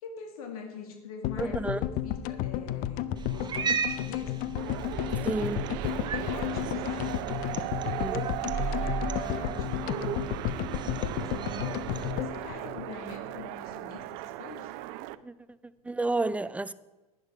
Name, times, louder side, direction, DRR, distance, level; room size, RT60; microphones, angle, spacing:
voice 1, 0.0-4.6 5.4-5.5 6.1-7.3 8.5-14.7, left 4 dB, 70° left, 2.3 m, -44 dB
sound 1, 1.2-13.5 13.7-13.8 14.0-14.1, left 12 dB, 50° left, 0.6 m, -33 dB
voice 2, 1.4-1.8 5.2-5.7 8.0-8.3 15.2-15.3 15.8-16.7, right 2 dB, 5° right, 0.4 m, -30 dB
Cat, 3.2-12.1, right 5 dB, 20° right, 0.9 m, -36 dB
sound 2, 4.6-15.2, right 16 dB, 55° right, 0.6 m, -37 dB
11.0 x 10.5 x 4.9 m
hypercardioid pair, 95°, 19 cm